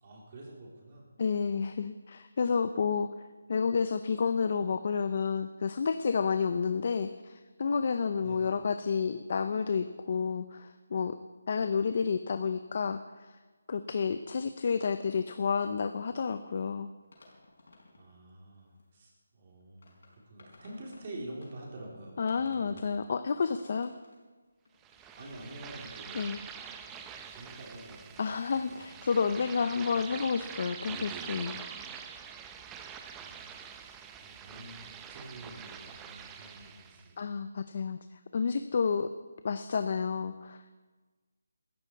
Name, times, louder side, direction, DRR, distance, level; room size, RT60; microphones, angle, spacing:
voice 1, 0.0-1.0 1.5-1.6 8.2-8.5 18.0-23.0 25.2-26.2 26.6-26.7 26.9-28.2 28.5-28.8 33.2-33.5 33.8-33.9 34.2-34.8 35.1-37.3, right 1 dB, 30° right, -2 dB, 3.9 m, -47 dB
voice 2, 1.2-3.1 3.5-11.2 11.5-13.4 13.7-16.9 22.2-23.9 26.1-26.4 28.2-31.6 37.2-39.1 39.4-40.8, left 5 dB, 45° left, 11 dB, 0.6 m, -30 dB
sound 1, 17.0-18.2 18.5-18.9 19.5-21.7 22.1-23.0 23.4-25.6 25.8-26.0, left 2 dB, 65° left, 5.5 m, -59 dB
sound 2, 24.8-37.1, right 7 dB, 10° right, 0.7 m, -45 dB
17.5 x 14.0 x 4.8 m, 1.3 s
figure-of-eight pair, 170°, 0 cm